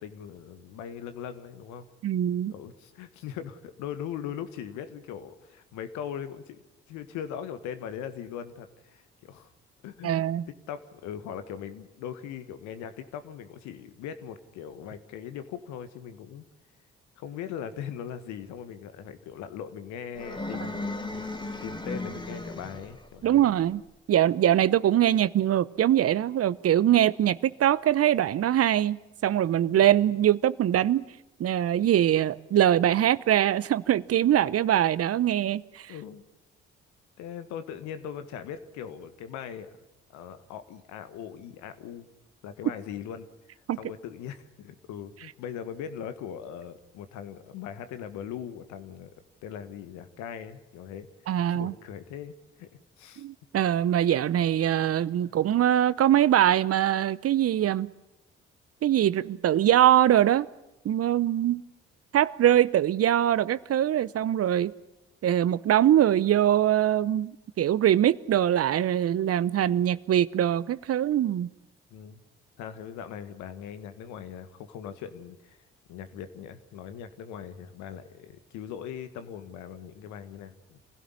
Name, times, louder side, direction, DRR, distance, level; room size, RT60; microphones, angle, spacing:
voice 1, 0.0-1.9 2.5-6.6 6.9-9.5 9.8-10.2 10.7-16.4 17.2-21.1 21.6-23.5 29.7-29.9 35.9-36.2 37.2-39.7 40.1-42.1 42.4-49.1 49.4-53.3 55.2-55.3 71.9-72.2 72.6-75.6 75.9-80.8, left 8 dB, 75° left, 1.6 m, -40 dB
voice 2, 2.0-2.5 10.0-10.4 23.2-23.8 24.1-31.0 31.4-35.9 43.7-43.8 51.3-51.7 53.2-57.9 58.8-60.5 60.8-61.6 62.1-64.7 65.2-71.5, right 11 dB, 55° right, 0.8 m, -23 dB
sound 1, 20.1-23.0, left 2 dB, 15° left, 3.6 m, -35 dB
25.5 x 16.5 x 9.8 m
hypercardioid pair, 45°, 29 cm